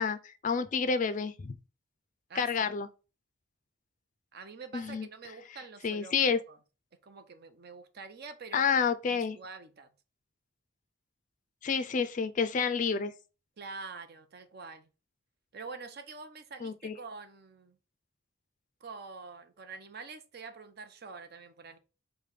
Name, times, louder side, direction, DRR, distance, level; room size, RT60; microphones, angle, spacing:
voice 1, 0.0-1.5 2.4-2.9 4.7-5.1 5.8-6.4 8.5-9.4 11.6-13.1 16.6-16.9, left 5 dB, 40° left, 0.4 m, -29 dB
voice 2, 2.3-2.8 4.3-6.1 6.5-6.6 7.0-8.7 9.1-9.9 13.6-14.9 15.5-17.8 18.8-21.8, right 4 dB, 50° right, 0.6 m, -46 dB
4.9 x 2.2 x 4.8 m
head